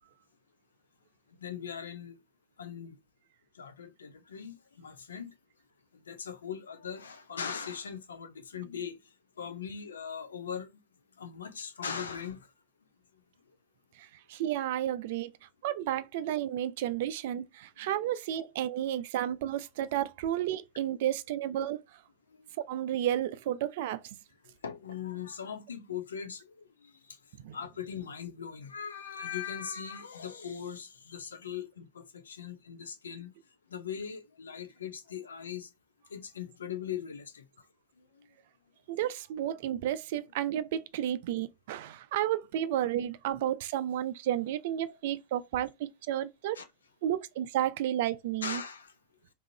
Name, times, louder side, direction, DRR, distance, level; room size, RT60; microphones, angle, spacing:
voice 1, 1.4-2.2 2.6-3.0 3.5-5.3 6.1-9.0 9.4-10.8 11.2-12.5 15.7-15.8 20.9-21.0 22.3-22.5 24.6-26.6 26.8-27.2 27.5-33.3 33.7-35.7 36.1-37.5 38.2-38.3 46.5-46.7 48.4-48.9, left 7 dB, 70° left, 0.7 m, -40 dB
voice 2, 14.0-21.8 22.7-24.2 27.4-27.6 38.9-46.6 47.0-48.6, right 11 dB, 50° right, 0.4 m, -32 dB
3.6 x 2.9 x 2.8 m
figure-of-eight pair, 90°, 0 cm